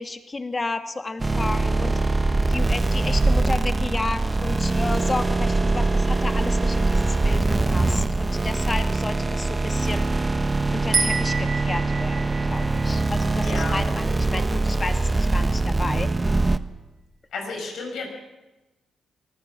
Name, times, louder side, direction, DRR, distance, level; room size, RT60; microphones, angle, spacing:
voice 1, 0.0-2.2 2.5-10.1 10.7-16.1, left 3 dB, 30° left, 7 dB, 2.1 m, -32 dB
sound 1, 1.2-16.6, right 3 dB, 25° right, 1.2 m, -23 dB
sound 2, 10.9-14.3, right 4 dB, 45° right, 4.7 m, -30 dB
voice 2, 13.4-13.8 17.3-18.1, left 3 dB, 70° left, 2 dB, 6.7 m, -32 dB
23.5 x 15.0 x 7.4 m, 1.1 s
hypercardioid pair, 50°, 0 cm